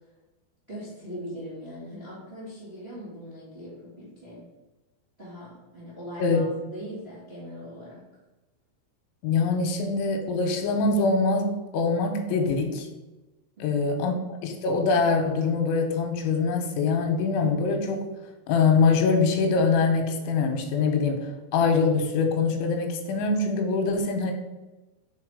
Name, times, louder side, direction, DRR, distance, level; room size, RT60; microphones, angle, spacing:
voice 1, 0.7-4.5 5.2-8.0, equal, 55° right, -9 dB, 0.7 m, -41 dB
voice 2, 9.2-12.9 13.6-18.1 18.5-24.3, left 4 dB, 85° left, 4 dB, 3.1 m, -24 dB
6.3 x 4.1 x 4.9 m, 1.1 s
omnidirectional pair, 5.4 m